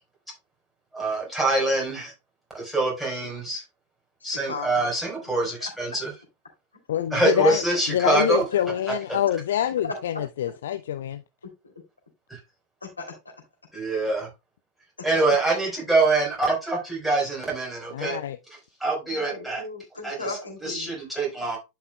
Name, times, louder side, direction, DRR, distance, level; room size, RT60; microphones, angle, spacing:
voice 1, 0.9-2.1 2.5-3.6 4.2-6.1 7.1-8.4 12.3-12.4 13.7-14.3 15.0-18.2 18.8-19.6 20.0-20.2 20.6-21.6, right 2 dB, ahead, 4.4 m, -24 dB
voice 2, 4.2-4.9 5.6-5.7 6.9-7.0 9.8-9.9 11.6-11.7 12.8-13.1 15.1-15.2 19.1-21.0, left 3 dB, 75° left, 3.0 m, -36 dB
voice 3, 6.9-11.2 17.9-18.4, left 11 dB, 60° left, 0.4 m, -26 dB
11.5 x 5.5 x 2.3 m
figure-of-eight pair, 90°, 0 cm